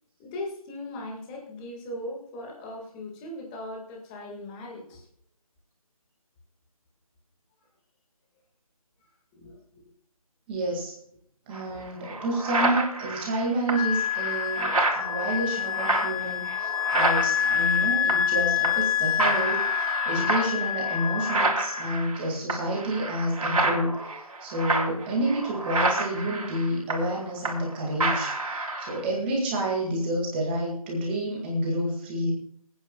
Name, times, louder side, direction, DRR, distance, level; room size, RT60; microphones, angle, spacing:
voice 1, 0.2-5.1 9.3-9.8, left 1 dB, 15° left, 0 dB, 1.8 m, -38 dB
voice 2, 10.5-10.9 11.5-23.9 24.4-32.3, right 1 dB, 15° right, -2 dB, 2.0 m, -29 dB
sound 1, 11.5-11.6 12.0-18.4 18.6-18.9 19.2-27.7 28.0-29.0, right 2 dB, 75° right, 3.2 m, -29 dB
Wind instrument woodwind instrument, 13.7-22.0, left 10 dB, 75° left, 1.6 m, -27 dB
27.5 x 9.4 x 2.3 m, 0.64 s
figure-of-eight pair, 160°, 18 cm